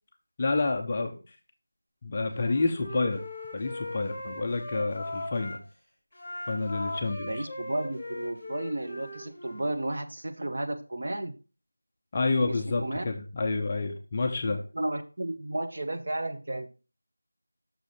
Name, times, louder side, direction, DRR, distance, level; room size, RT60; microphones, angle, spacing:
voice 1, 0.4-1.4 2.0-3.2 3.5-5.6 6.5-7.4 12.1-14.6, left 3 dB, 15° left, 2 dB, 0.4 m, -29 dB
Wind instrument woodwind instrument, 2.3-5.6 6.1-9.7, left 1 dB, 5° right, 2.6 m, -39 dB
voice 2, 7.2-11.4 12.3-13.0 14.4-16.7, right 1 dB, 35° right, 5 dB, 0.7 m, -33 dB
6.1 x 4.0 x 4.9 m, 0.34 s
figure-of-eight pair, 180°, 0 cm